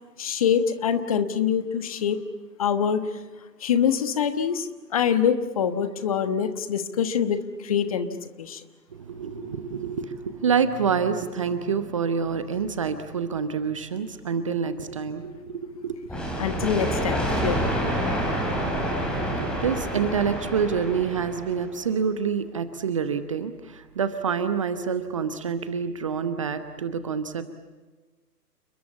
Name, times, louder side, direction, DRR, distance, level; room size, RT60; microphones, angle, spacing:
voice 1, 0.2-2.2 2.6-3.1 3.6-8.6 16.4-17.7, left 7 dB, 20° left, 10 dB, 1.2 m, -25 dB
voice 2, 8.9-16.0 18.9-27.4, right 6 dB, 20° right, 10 dB, 1.0 m, -27 dB
sound 1, 16.1-21.7, equal, ahead, 3.8 m, -28 dB
29.5 x 21.5 x 8.5 m, 1.3 s
figure-of-eight pair, 140°, 48 cm